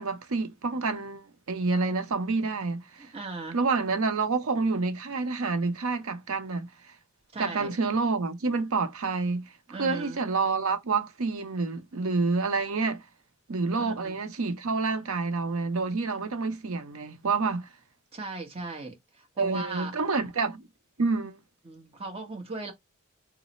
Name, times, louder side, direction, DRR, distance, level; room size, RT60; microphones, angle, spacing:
voice 1, 0.0-3.1 3.5-6.7 7.4-9.5 9.8-13.0 13.5-17.7 19.4-20.6 21.0-21.4, right 4 dB, 75° right, 0.6 m, -28 dB
voice 2, 3.0-3.6 7.3-7.7 9.7-10.2 13.7-14.2 18.1-19.9 21.6-22.7, right 3 dB, 30° right, 0.9 m, -38 dB
3.1 x 2.0 x 3.9 m
head